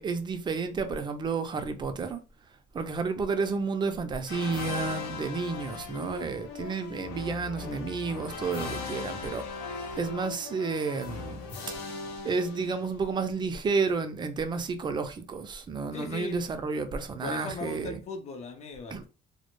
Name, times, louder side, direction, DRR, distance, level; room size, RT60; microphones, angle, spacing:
voice 1, 0.0-2.2 2.7-11.4 11.7-11.8 12.2-18.0 18.9-19.0, right 4 dB, 25° right, 0.4 m, -31 dB
sound 1, 4.3-13.1, left 4 dB, 75° left, 0.7 m, -38 dB
voice 2, 15.9-16.4 17.2-19.1, left 3 dB, 40° left, 0.5 m, -38 dB
2.1 x 2.1 x 2.9 m
cardioid pair, 110°, 17 cm